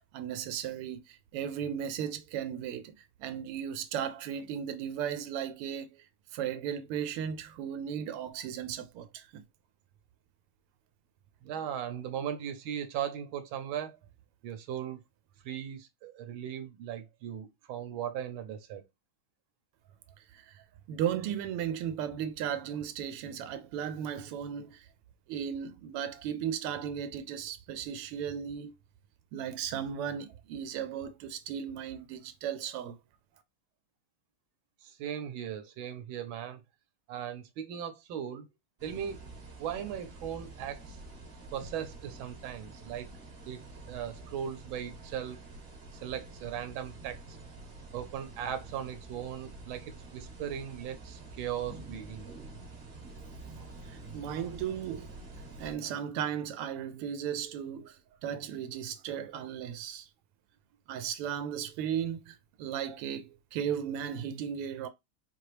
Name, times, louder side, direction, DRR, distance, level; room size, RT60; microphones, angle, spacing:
voice 1, 0.1-2.9 3.2-6.1 6.3-9.4 20.3-24.9 25.3-28.8 29.3-33.0 53.8-55.1 55.6-60.1 60.9-64.9, right 9 dB, 90° right, 1.5 m, -36 dB
voice 2, 11.4-14.0 14.4-15.0 15.4-18.8 34.8-36.6 37.1-38.5 38.8-39.2 39.6-41.0 41.5-43.1 43.5-43.6 43.9-45.4 45.9-47.4 47.9-52.3, right 9 dB, 70° right, 1.5 m, -38 dB
sound 1, 38.8-55.7, right 2 dB, 40° right, 1.0 m, -48 dB
4.7 x 2.9 x 3.2 m
omnidirectional pair, 2.4 m